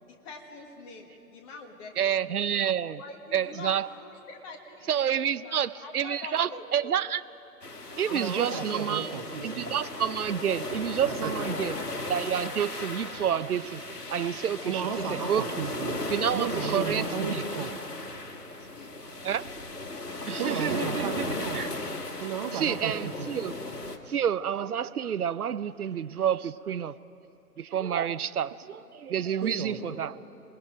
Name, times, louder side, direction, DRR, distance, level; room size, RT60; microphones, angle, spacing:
voice 1, 0.1-2.6 3.0-6.9 7.8-9.0 14.6-15.0 18.7-19.0, left 3 dB, 20° left, 2 dB, 1.6 m, -45 dB
voice 2, 2.0-3.0 3.3-3.9 4.9-7.2 8.0-9.1 9.4-11.8 12.1-13.8 14.1-15.5 16.1-17.4 19.2-19.4 20.3-21.7 22.5-23.5 24.1-26.9 27.6-30.2, right 9 dB, 70° right, 16 dB, 0.7 m, -29 dB
sound 1, 7.6-24.0, left 2 dB, 80° left, 1.8 m, -36 dB
voice 3, 8.1-9.7 10.9-11.5 14.7-16.0 16.3-17.7 20.4-21.6 22.2-23.3 29.4-29.8, right 6 dB, 25° right, 3 dB, 1.1 m, -34 dB
27.0 x 19.5 x 5.1 m, 2.8 s
figure-of-eight pair, 140°, 47 cm